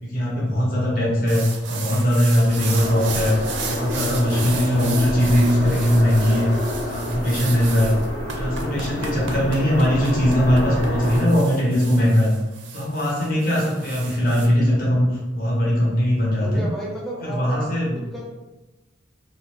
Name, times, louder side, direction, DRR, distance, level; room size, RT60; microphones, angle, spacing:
voice 1, 0.0-3.4 3.6-6.5 6.9-7.9 8.4-12.3 12.7-15.1 15.3-16.6 17.2-18.0, equal, 50° left, -5 dB, 0.8 m, -20 dB
sound 1, 1.3-14.4, right 5 dB, 80° right, 0.4 m, -35 dB
sound 2, 2.8-11.2, left 1 dB, 90° left, 1.2 m, -29 dB
voice 2, 16.4-18.3, right 1 dB, ahead, -5 dB, 0.6 m, -34 dB
2.5 x 2.1 x 2.9 m, 1.1 s
head